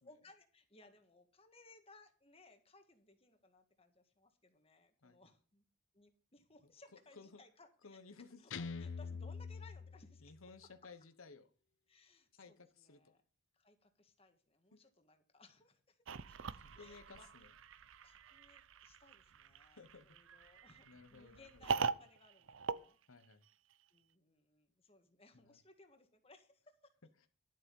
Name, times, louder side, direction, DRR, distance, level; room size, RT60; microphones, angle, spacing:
voice 1, 0.0-5.6 5.9-8.0 8.4-10.3 11.9-13.2 13.5-17.3 17.7-23.0 23.9-26.9, left 3 dB, 30° left, 6 dB, 1.7 m, -64 dB
voice 2, 7.8-8.4 10.2-11.5 12.4-13.1 14.7-14.8 16.6-17.5 19.8-20.4 20.9-21.7 23.1-23.4 25.3-25.6, left 4 dB, 80° left, 8 dB, 1.0 m, -57 dB
Guitar, 8.5-10.6, left 5 dB, 65° left, 0.6 m, -45 dB
sound 1, 16.1-23.7, right 5 dB, 70° right, 0.6 m, -43 dB
12.0 x 7.5 x 5.4 m, 0.42 s
head